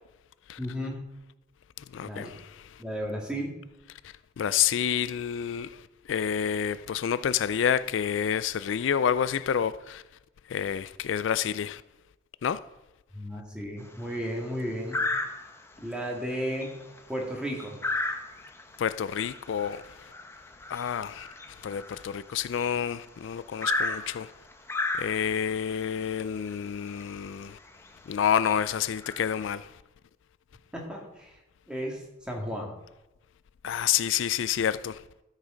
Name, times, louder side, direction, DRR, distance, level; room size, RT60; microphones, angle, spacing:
voice 1, 0.6-1.0 2.0-2.3 2.8-3.5 13.1-15.0 15.8-16.7 17.1-17.8 30.9-31.3 31.7-32.7, equal, 5° right, 2.3 m, -34 dB
voice 2, 1.9-2.5 4.4-5.8 6.1-10.0 10.5-11.8 12.4-12.6 18.8-19.8 20.7-21.3 21.6-24.3 25.0-27.6 28.1-29.7 33.6-35.0, left 8 dB, 75° left, 0.4 m, -28 dB
sound 1, 13.8-14.2 14.9-15.7 16.2-16.3 16.6-22.9 23.6-25.5 26.5-26.6 27.0-27.1 27.7-27.9 28.3-29.5, left 2 dB, 15° left, 0.9 m, -34 dB
13.0 x 6.5 x 5.1 m
head